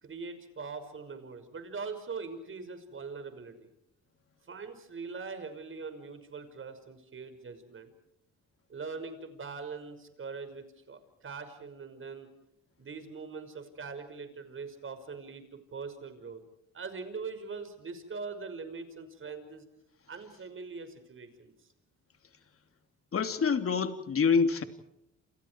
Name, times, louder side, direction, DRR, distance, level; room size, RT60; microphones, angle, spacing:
voice 1, 0.0-3.7 4.5-7.9 8.7-12.3 12.8-16.4 16.7-19.7 20.1-21.5, right 4 dB, 45° right, 9 dB, 5.8 m, -42 dB
voice 2, 23.1-24.6, left 5 dB, 45° left, 7 dB, 3.0 m, -26 dB
29.0 x 29.0 x 4.8 m, 0.80 s
cardioid pair, 90°, 30 cm